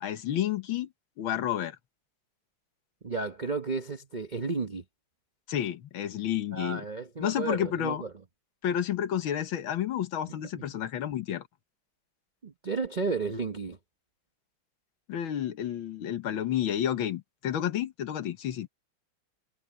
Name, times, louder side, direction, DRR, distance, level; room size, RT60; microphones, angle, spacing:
voice 1, 0.0-0.9 1.2-1.8 5.5-6.8 7.2-8.0 8.6-11.4 15.1-18.7, left 10 dB, 75° left, 1.9 m, -30 dB
voice 2, 3.0-4.8 6.5-8.1 10.4-10.7 12.4-13.8, right 4 dB, 45° right, 0.6 m, -33 dB
omnidirectional pair, 2.3 m